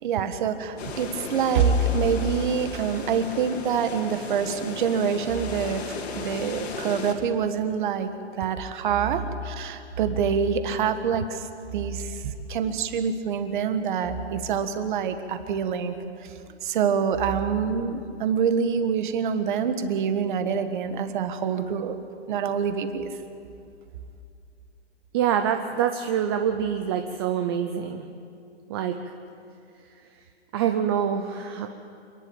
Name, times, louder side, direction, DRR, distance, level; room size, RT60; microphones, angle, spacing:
voice 1, 0.0-5.8 6.1-8.1 8.4-15.9 16.2-16.3 16.6-22.0 22.3-23.1, right 6 dB, 45° right, 9 dB, 1.5 m, -26 dB
sound 1, 0.8-7.1, left 4 dB, 60° left, 2.7 m, -36 dB
voice 2, 25.1-28.1 28.7-29.0 30.5-31.7, right 8 dB, 20° right, 6 dB, 0.6 m, -25 dB
28.0 x 11.0 x 8.8 m, 2.5 s
hypercardioid pair, 160°, 35 cm